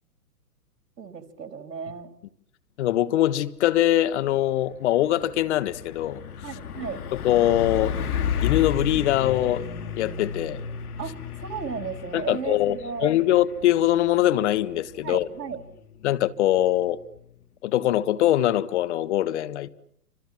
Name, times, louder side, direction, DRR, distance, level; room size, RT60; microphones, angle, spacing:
voice 1, 1.0-2.1 6.4-7.0 11.0-13.2 15.0-15.6, right 6 dB, 80° right, 3.4 m, -34 dB
voice 2, 2.8-6.2 7.2-8.0 8.4-9.7 10.0-10.6 12.1-15.3 16.0-17.0 17.6-19.7, left 13 dB, 45° left, 1.5 m, -22 dB
Truck, 4.1-4.4 4.7-17.3, left 7 dB, 65° left, 3.2 m, -33 dB
28.5 x 26.0 x 7.4 m
hypercardioid pair, 135°, 48 cm